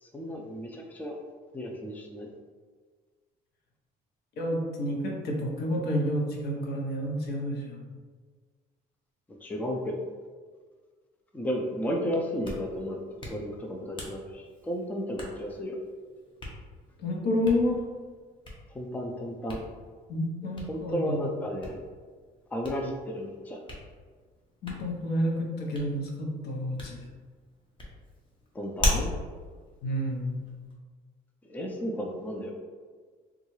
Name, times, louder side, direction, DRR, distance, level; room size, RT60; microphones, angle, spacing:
voice 1, 0.0-1.2 1.5-2.3 9.4-10.0 11.3-13.0 13.3-15.8 18.7-19.6 20.7-21.8 22.5-23.6 28.5-29.1 31.4-32.5, equal, 10° left, 1 dB, 0.4 m, -33 dB
voice 2, 4.4-7.8 17.0-17.8 20.1-21.2 24.6-27.0 29.8-30.5, equal, 70° left, 0 dB, 0.8 m, -29 dB
Hands, 12.2-30.7, left 1 dB, 30° left, 0.9 m, -39 dB
3.6 x 2.3 x 3.1 m, 1.5 s
cardioid pair, 110°, 17 cm